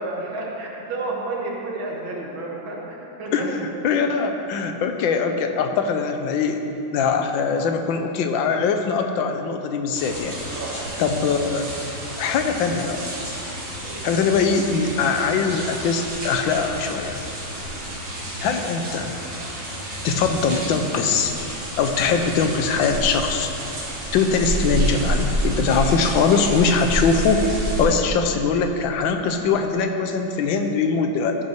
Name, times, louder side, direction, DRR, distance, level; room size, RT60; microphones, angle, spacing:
voice 1, 0.0-3.5 10.5-10.9 13.8-14.2 17.6-17.8, right 2 dB, 85° right, -3 dB, 2.3 m, -31 dB
voice 2, 3.8-6.6 6.9-10.4 11.0-11.7 12.2-13.1 14.0-17.2 18.4-19.1 20.0-21.3 21.8-23.5 24.1-27.4 27.8-31.4, left 5 dB, 80° left, 5 dB, 1.4 m, -22 dB
sound 1, 9.9-27.8, right 1 dB, 70° right, 2.8 m, -30 dB
13.5 x 5.7 x 4.6 m, 2.9 s
omnidirectional pair, 2.1 m